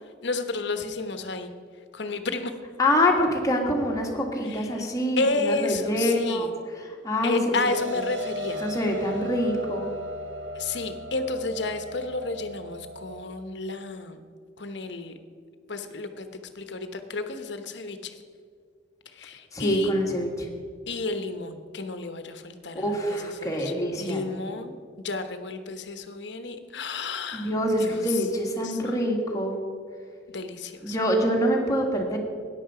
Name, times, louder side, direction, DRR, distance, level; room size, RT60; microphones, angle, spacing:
voice 1, 0.2-1.5 1.9-2.5 4.4-4.9 5.2-6.5 7.2-8.6 10.5-14.2 14.6-15.1 15.7-16.3 16.5-18.1 19.1-19.9 20.9-27.5 27.8-28.3 28.6-29.0 30.3-31.0, left 3 dB, 65° left, 8 dB, 1.1 m, -32 dB
voice 2, 2.8-6.5 6.8-7.4 8.6-9.9 19.5-20.5 22.7-24.3 27.3-29.6 30.8-32.2, equal, 20° left, 0 dB, 1.9 m, -25 dB
sound 1, 7.6-13.2, equal, 70° right, 0.8 m, -37 dB
14.0 x 10.0 x 5.0 m, 2.1 s
head